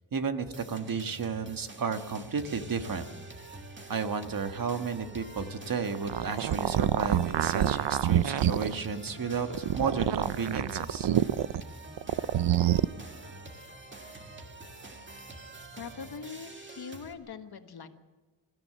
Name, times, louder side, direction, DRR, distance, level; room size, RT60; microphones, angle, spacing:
voice 1, 0.1-3.1 3.9-11.1, right 5 dB, 55° right, 8 dB, 1.5 m, -32 dB
sound 1, 0.5-17.1, right 2 dB, 25° right, 1.9 m, -46 dB
sound 2, 6.0-8.8 9.4-11.6 12.0-12.9, right 11 dB, 85° right, 0.7 m, -26 dB
voice 2, 15.2-17.9, left 6 dB, 65° left, 8 dB, 1.6 m, -43 dB
24.0 x 14.5 x 7.7 m, 1.3 s
wide cardioid pair, 160°, 41 cm